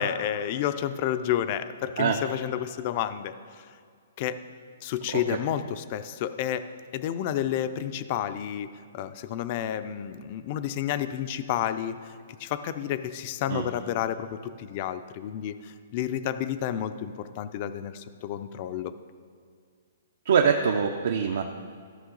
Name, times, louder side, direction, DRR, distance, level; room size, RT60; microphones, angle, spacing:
voice 1, 0.0-3.7 4.2-4.4 4.8-12.0 12.4-18.9, left 10 dB, 35° left, 12 dB, 0.3 m, -30 dB
voice 2, 20.3-21.4, right 6 dB, 65° right, 4 dB, 0.5 m, -24 dB
13.0 x 5.9 x 3.8 m, 2.1 s
hypercardioid pair, 165°, 0 cm